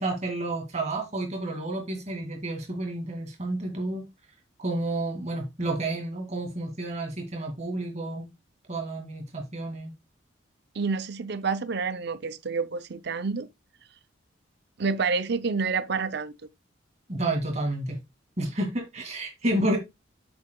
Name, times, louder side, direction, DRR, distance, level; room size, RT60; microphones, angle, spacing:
voice 1, 0.0-4.1 4.6-8.3 8.7-9.9 17.1-18.0 18.4-19.8, right 1 dB, 35° right, 2.2 m, -30 dB
voice 2, 10.7-13.5 14.8-16.3, right 4 dB, 55° right, 0.5 m, -28 dB
7.3 x 7.2 x 2.2 m
head